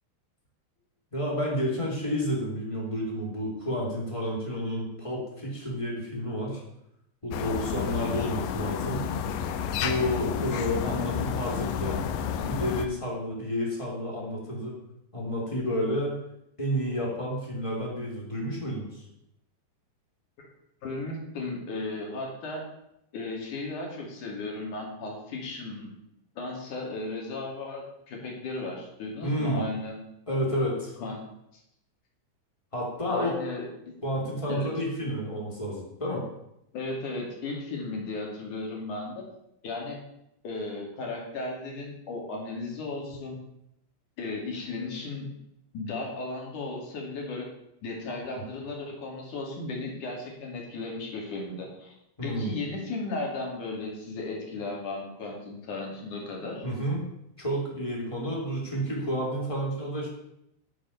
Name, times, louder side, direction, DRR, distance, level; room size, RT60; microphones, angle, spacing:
voice 1, 1.1-6.6 7.2-9.1 9.8-12.0 12.4-14.7 15.1-16.2 16.6-19.0 29.2-29.6 30.3-30.9 32.7-33.3 34.0-36.3 48.2-48.4 52.2-52.5 56.6-57.0 57.4-60.1, equal, 10° left, -3 dB, 2.4 m, -30 dB
sound 1, 7.3-12.9, left 7 dB, 75° left, 2.8 m, -31 dB
voice 2, 20.8-22.6 23.1-25.9 26.4-29.9 31.0-31.2 31.5-31.6 33.1-33.7 34.5-34.7 36.7-39.2 39.6-40.0 40.4-43.4 44.2-45.3 45.7-47.5 47.8-51.9 52.2-56.7, left 2 dB, 50° left, -1 dB, 3.5 m, -35 dB
10.0 x 7.3 x 7.0 m, 0.80 s
omnidirectional pair, 5.1 m